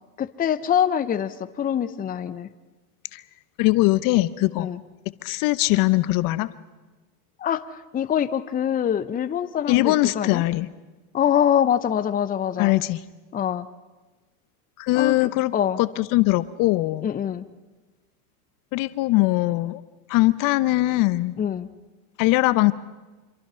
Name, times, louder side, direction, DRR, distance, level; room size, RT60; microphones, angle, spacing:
voice 1, 0.2-2.5 4.6-4.8 7.4-7.6 7.9-10.4 11.1-12.7 13.3-13.7 15.0-15.2 15.5-15.8 17.0-17.4 21.4-21.7, left 9 dB, 20° left, 12 dB, 0.8 m, -24 dB
voice 2, 3.6-4.7 5.2-6.5 9.7-10.7 12.6-13.0 14.8-15.5 15.8-17.1 18.7-19.8 20.1-21.4 22.2-22.7, left 19 dB, 45° left, 16 dB, 0.8 m, -21 dB
26.5 x 22.5 x 5.7 m, 1.2 s
hypercardioid pair, 105°, 46 cm